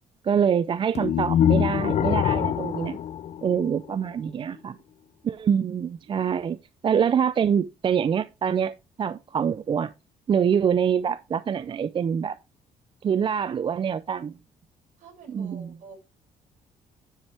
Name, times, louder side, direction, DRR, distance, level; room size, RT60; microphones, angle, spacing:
voice 1, 0.2-3.0 3.4-4.8 5.2-6.6 6.8-9.9 10.3-12.4 13.0-14.3 15.3-15.7, right 7 dB, 35° right, 0.4 m, -25 dB
sound 1, 0.9-4.1, left 9 dB, 55° left, 0.5 m, -24 dB
voice 2, 15.0-16.0, right 4 dB, 65° right, 6.1 m, -47 dB
10.0 x 7.3 x 3.3 m
cardioid pair, 95°, 14 cm